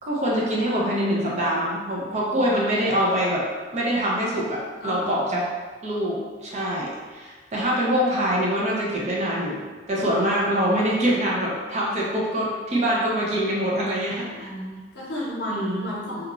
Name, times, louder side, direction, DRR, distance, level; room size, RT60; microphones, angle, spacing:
voice 1, 0.0-3.4 3.7-5.4 5.8-9.6 9.9-14.5 15.5-15.9, equal, 40° right, -4 dB, 0.6 m, -24 dB
voice 2, 2.3-2.7 4.8-5.5 13.2-13.3 14.3-16.3, left 1 dB, 75° left, -5 dB, 0.8 m, -34 dB
3.0 x 2.4 x 2.4 m, 1.4 s
head